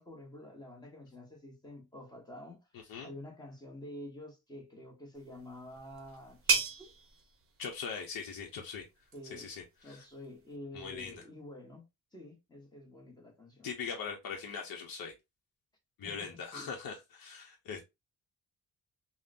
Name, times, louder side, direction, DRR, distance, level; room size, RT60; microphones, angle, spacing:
voice 1, 0.0-6.9 9.1-9.5 9.8-11.8 12.1-13.7 16.0-16.7, left 1 dB, 10° left, 0.9 m, -49 dB
sound 1, 5.1-10.6, right 5 dB, 40° right, 0.7 m, -37 dB
voice 2, 7.6-8.9 9.3-10.0 10.7-11.2 13.6-15.2 16.0-17.8, left 6 dB, 70° left, 0.7 m, -41 dB
3.6 x 2.1 x 2.5 m
wide cardioid pair, 145°, 35 cm